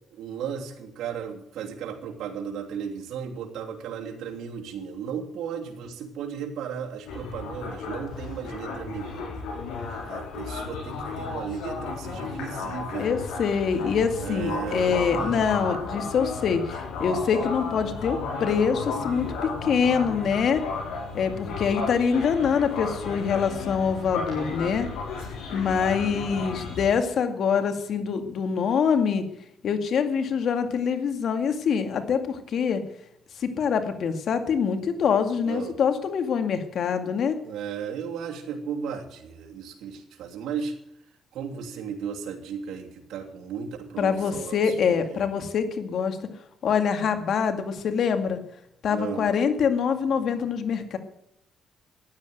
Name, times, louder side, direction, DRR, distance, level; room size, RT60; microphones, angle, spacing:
voice 1, 0.1-9.5 10.0-13.2 14.2-15.5 35.4-35.7 37.4-40.7 41.3-45.2 48.9-49.3, right 7 dB, 80° right, 0 dB, 3.0 m, -35 dB
sound 1, 7.1-26.9, left 4 dB, 85° left, 7.5 m, -34 dB
voice 2, 13.0-19.3 19.6-20.6 21.1-24.9 25.5-29.2 29.6-32.8 33.4-37.4 44.0-46.2 46.6-48.4 48.8-51.0, left 6 dB, 65° left, 8 dB, 2.2 m, -25 dB
14.5 x 10.0 x 7.9 m, 0.77 s
cardioid pair, 90°, 0 cm